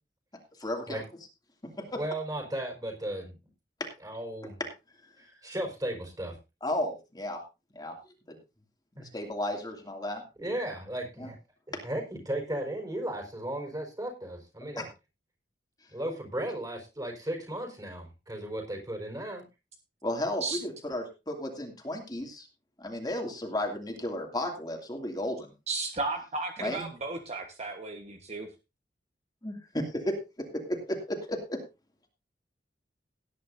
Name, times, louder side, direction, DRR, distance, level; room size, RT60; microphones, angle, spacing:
voice 1, 0.6-1.0 1.9-2.0 6.6-7.4 7.7-8.0 8.3-8.4 9.0-10.2 11.2-11.3 14.8-14.9 20.0-22.5 22.8-25.5 26.6-26.9 29.4-30.1 30.5-31.6, left 1 dB, 25° left, 2 dB, 2.5 m, -33 dB
voice 2, 1.9-3.3 4.0-4.6 5.2-6.4 9.0-9.1 10.4-11.4 11.7-14.9 15.9-19.4, right 1 dB, 20° right, 2 dB, 4.7 m, -35 dB
voice 3, 25.7-28.5, right 3 dB, 40° right, 4 dB, 1.3 m, -34 dB
18.0 x 10.0 x 2.7 m, 0.27 s
head